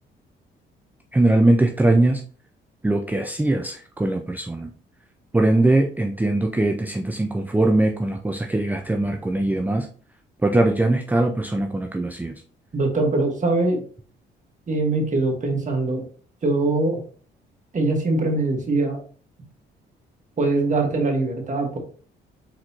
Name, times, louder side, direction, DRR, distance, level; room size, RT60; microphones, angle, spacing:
voice 1, 1.1-2.2 2.8-4.7 5.3-9.9 10.4-12.3, right 2 dB, 10° right, 4 dB, 0.4 m, -21 dB
voice 2, 12.7-13.8 14.7-16.0 16.4-17.0 17.7-19.0 20.4-21.8, right 2 dB, 40° right, 2 dB, 1.5 m, -22 dB
4.4 x 3.9 x 2.8 m, 0.43 s
cardioid pair, 75°, 20 cm